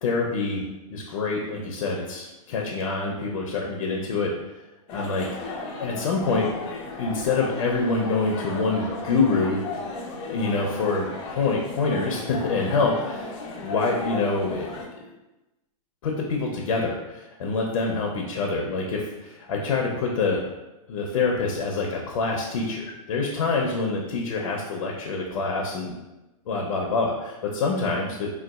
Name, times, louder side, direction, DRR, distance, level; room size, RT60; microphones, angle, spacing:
voice 1, 0.0-0.6 0.9-4.3 4.9-5.3 5.6-6.5 7.0-9.6 10.3-14.7 16.0-20.4 20.9-25.9 26.5-28.3, left 3 dB, 75° left, 0 dB, 0.5 m, -26 dB
sound 1, 4.9-14.9, left 3 dB, 25° left, 0.4 m, -35 dB
3.9 x 2.3 x 2.3 m, 1.0 s
supercardioid pair, 160°, 18 cm